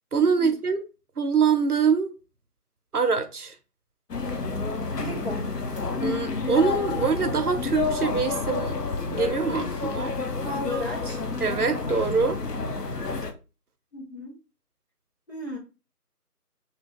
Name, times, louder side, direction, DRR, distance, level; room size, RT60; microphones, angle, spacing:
voice 1, 0.1-0.8 1.2-2.1 2.9-3.5 6.0-8.8 9.1-10.1 11.4-12.4, right 5 dB, 70° right, 0.6 m, -24 dB
sound 1, 4.1-13.3, left 4 dB, 85° left, 0.8 m, -29 dB
voice 2, 5.0-5.5 10.4-11.2 13.9-14.3 15.3-15.6, left 1 dB, 40° left, 1.2 m, -34 dB
2.8 x 2.2 x 3.4 m
figure-of-eight pair, 175°, 47 cm